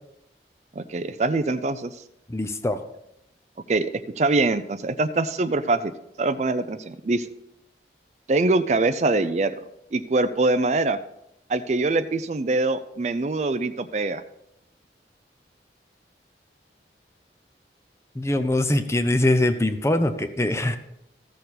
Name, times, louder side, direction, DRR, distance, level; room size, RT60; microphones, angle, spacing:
voice 1, 0.8-1.9 3.7-3.9 4.2-5.9 6.2-7.3 8.3-9.6 9.9-11.0 11.5-14.2, right 2 dB, 40° right, 11 dB, 0.4 m, -23 dB
voice 2, 2.3-2.8 18.2-20.8, left 1 dB, 15° left, 9 dB, 0.6 m, -22 dB
14.5 x 6.7 x 4.1 m, 0.83 s
head